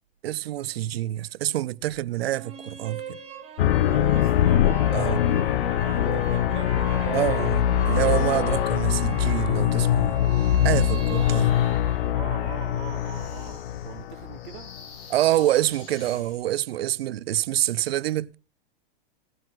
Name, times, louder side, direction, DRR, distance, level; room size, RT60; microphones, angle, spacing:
voice 1, 0.2-3.2 4.9-5.2 7.1-10.2 10.6-11.6 15.1-18.4, right 14 dB, 85° right, 0.6 m, -26 dB
sound 1, 2.2-12.2, right 10 dB, 20° right, 1.5 m, -39 dB
sound 2, 3.6-14.8, left 11 dB, 70° left, 0.7 m, -23 dB
voice 2, 4.1-7.2 10.8-11.3 12.1-14.7, right 11 dB, 55° right, 1.3 m, -42 dB
sound 3, 10.2-16.5, left 6 dB, 50° left, 7.8 m, -48 dB
17.0 x 6.0 x 6.0 m
supercardioid pair, 160°, 29 cm